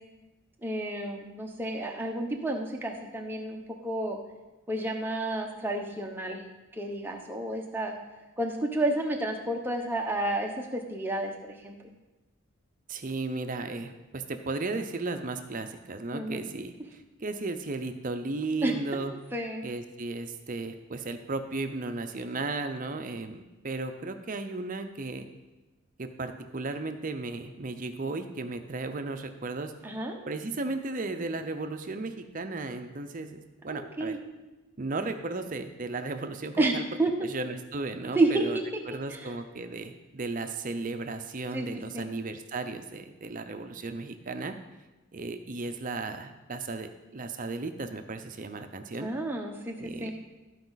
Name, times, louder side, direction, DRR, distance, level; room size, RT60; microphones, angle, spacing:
voice 1, 0.6-4.2 4.7-6.4 6.7-7.9 8.4-11.8 16.1-16.4 18.6-19.6 29.8-30.2 33.7-34.2 36.6-37.3 38.1-38.6 39.1-39.3 41.5-42.1 49.0-50.1, right 2 dB, 10° right, 1 dB, 0.9 m, -31 dB
voice 2, 12.9-19.1 19.6-25.3 26.0-29.7 30.3-33.4 33.6-34.2 34.8-36.8 37.2-38.6 38.9-44.5 45.1-49.1 49.8-50.1, right 3 dB, 40° right, 7 dB, 0.6 m, -35 dB
14.0 x 4.9 x 4.0 m, 1.1 s
head